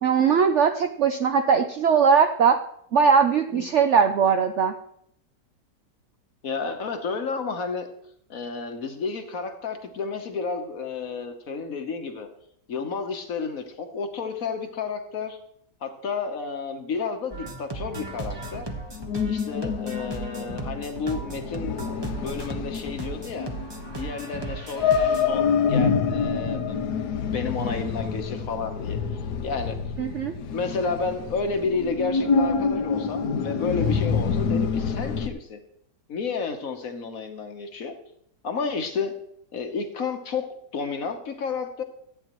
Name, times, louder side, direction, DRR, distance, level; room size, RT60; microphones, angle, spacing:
voice 1, 0.0-2.6 2.9-4.7 30.0-30.4, right 6 dB, 65° right, 6 dB, 0.7 m, -20 dB
voice 2, 6.4-7.9 8.3-12.3 12.7-15.4 15.8-18.7 19.2-23.5 24.0-26.9 27.3-29.8 30.5-35.6 36.1-37.9 38.4-39.1 39.5-40.5 40.7-41.8, left 4 dB, 55° left, 6 dB, 1.4 m, -31 dB
sound 1, 17.3-25.2, right 3 dB, 20° right, 0.9 m, -36 dB
sound 2, 17.8-35.3, left 6 dB, 75° left, 1.3 m, -27 dB
14.5 x 9.1 x 3.0 m, 0.70 s
omnidirectional pair, 1.8 m